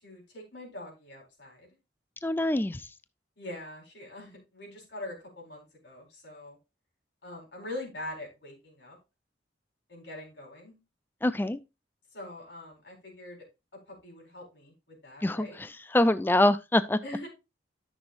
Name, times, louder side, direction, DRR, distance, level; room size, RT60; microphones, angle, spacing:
voice 1, 0.0-1.7 3.4-6.6 7.2-9.0 9.9-10.8 12.1-13.4 13.9-15.6 17.0-17.3, left 1 dB, 75° left, 4.3 m, -43 dB
voice 2, 2.2-2.9 11.2-11.6 15.2-17.0, left 1 dB, 10° left, 0.3 m, -25 dB
13.0 x 6.1 x 2.5 m
head